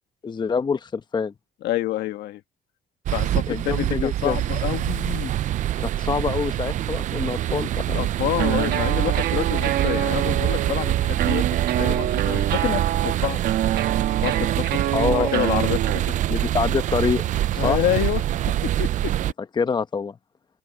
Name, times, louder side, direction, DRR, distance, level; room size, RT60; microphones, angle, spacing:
voice 1, 0.2-1.3 3.5-4.4 5.8-8.0 14.9-15.3 16.3-17.2 17.6-17.8 19.6-20.1, left 5 dB, 25° left, 1.0 m, -25 dB
voice 2, 1.6-2.4 3.1-5.3 7.9-11.4 11.8-13.4 14.2-14.8 15.1-16.0 17.6-19.1, left 14 dB, 75° left, 1.5 m, -28 dB
sound 1, 3.1-19.3, right 12 dB, 50° right, 0.4 m, -25 dB
sound 2, 8.4-16.3, right 12 dB, 65° right, 1.3 m, -26 dB
open air
cardioid pair, 110°, 17 cm